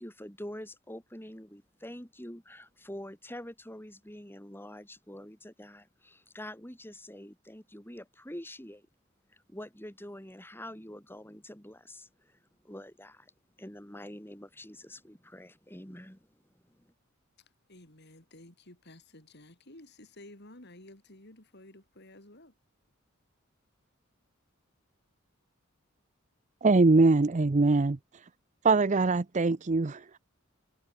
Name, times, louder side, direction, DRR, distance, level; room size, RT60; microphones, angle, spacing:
voice 1, 0.0-8.9 9.3-12.4 12.6-13.3 13.6-16.3 16.6-16.9, left 1 dB, 10° left, 7.0 m, -46 dB
voice 2, 17.7-22.5, left 1 dB, 55° left, 4.8 m, -53 dB
voice 3, 26.6-28.0 28.6-30.2, right 3 dB, 35° right, 0.6 m, -23 dB
head